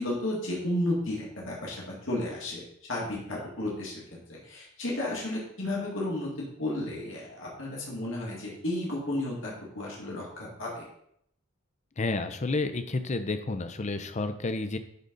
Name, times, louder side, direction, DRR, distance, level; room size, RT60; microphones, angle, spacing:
voice 1, 0.0-2.6 2.9-3.9 4.4-6.3 6.6-10.8, left 1 dB, 70° left, -4 dB, 2.0 m, -32 dB
voice 2, 12.0-14.8, left 3 dB, 35° left, 10 dB, 0.6 m, -30 dB
10.5 x 4.0 x 3.9 m, 0.71 s
head